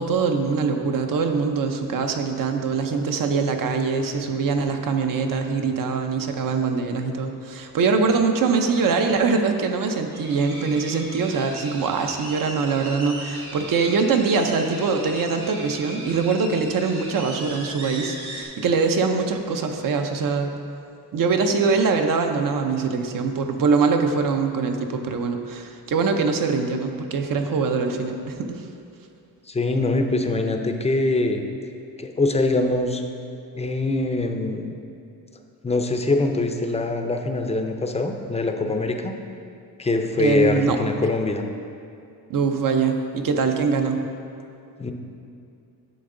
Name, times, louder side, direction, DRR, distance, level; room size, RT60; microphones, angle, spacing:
voice 1, 0.0-20.5 21.1-28.6 40.2-40.8 42.3-44.0, right 4 dB, 60° right, 5 dB, 0.7 m, -23 dB
sound 1, 10.1-18.4, right 1 dB, 85° right, 1.9 m, -38 dB
voice 2, 29.5-31.4 32.0-33.0 33.6-34.7 35.6-39.1 39.8-41.4 44.8-44.9, left 2 dB, 15° left, 5 dB, 0.5 m, -23 dB
9.3 x 6.9 x 3.8 m, 2.6 s
wide cardioid pair, 140°, 38 cm